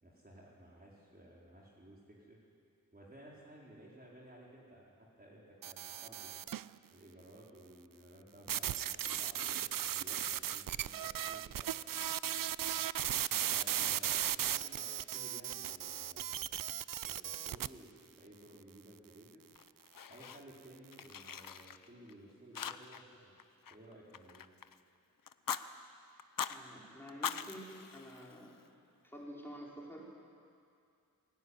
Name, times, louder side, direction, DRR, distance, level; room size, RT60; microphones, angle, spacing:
voice 1, 0.0-2.4 2.9-6.4 6.9-11.7 13.5-16.7 17.1-19.4 20.1-23.3 23.7-24.5, right 1 dB, 25° right, -4 dB, 4.6 m, -56 dB
sound 1, 5.6-6.7 8.5-17.7, right 10 dB, 70° right, 0.5 m, -36 dB
Fire, 19.5-20.6 20.9-22.1 22.5-23.1 23.4-24.8 25.3-25.6 26.2-26.6 27.1-28.7, left 8 dB, 70° left, 0.8 m, -42 dB
voice 2, 26.5-27.7 27.9-28.5 29.0-30.0, equal, 5° left, -5 dB, 5.3 m, -49 dB
21.5 x 17.0 x 9.9 m, 2.5 s
wide cardioid pair, 90°, 34 cm